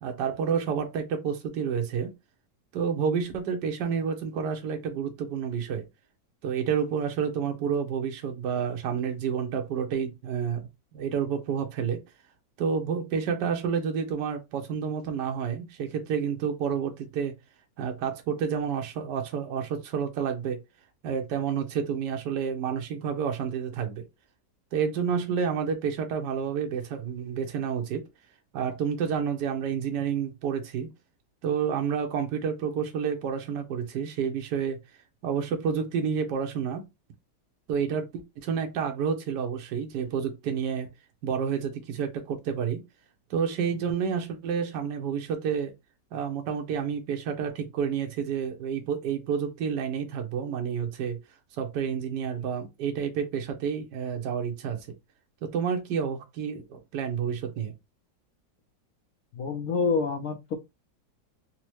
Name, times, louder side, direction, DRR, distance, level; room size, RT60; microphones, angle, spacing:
voice 1, 0.0-2.1 2.7-5.8 6.4-12.0 12.6-17.3 17.8-20.6 21.0-24.0 24.7-28.0 28.5-30.9 31.4-34.8 35.2-36.8 37.7-40.9 41.2-42.8 43.3-45.7 46.1-51.2 51.6-54.9 55.4-57.7, right 7 dB, 70° right, 1.4 m, -29 dB
voice 2, 59.3-60.5, left 4 dB, 65° left, 1.0 m, -27 dB
4.3 x 2.0 x 3.0 m
omnidirectional pair, 2.0 m